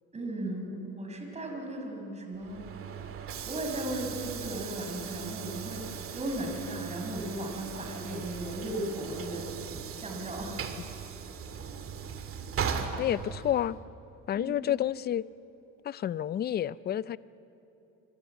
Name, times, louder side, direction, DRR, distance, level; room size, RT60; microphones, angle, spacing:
voice 1, 0.1-2.6 3.2-9.5 10.0-10.7 14.3-14.6, right 1 dB, 20° right, 2 dB, 5.9 m, -36 dB
Train / Sliding door, 2.3-13.8, right 7 dB, 45° right, 2.4 m, -38 dB
voice 2, 13.0-13.8 14.3-15.2 15.8-17.2, left 11 dB, 30° left, 18 dB, 0.5 m, -29 dB
27.0 x 26.0 x 8.1 m, 2.9 s
cardioid pair, 120°, 31 cm